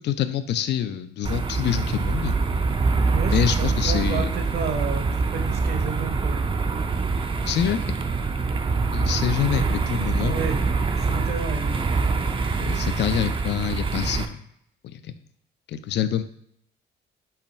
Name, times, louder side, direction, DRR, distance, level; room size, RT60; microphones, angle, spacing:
voice 1, 0.0-2.4 3.3-4.3 7.4-7.8 8.9-10.4 12.6-14.4 14.9-15.1 15.7-16.2, left 10 dB, 60° left, 11 dB, 0.4 m, -26 dB
sound 1, 1.2-14.3, right 4 dB, 25° right, 0.4 m, -24 dB
voice 2, 3.1-6.4 10.2-10.6 11.1-11.9, right 5 dB, 55° right, 5 dB, 0.8 m, -31 dB
5.6 x 2.3 x 4.1 m, 0.70 s
cardioid pair, 90°, 20 cm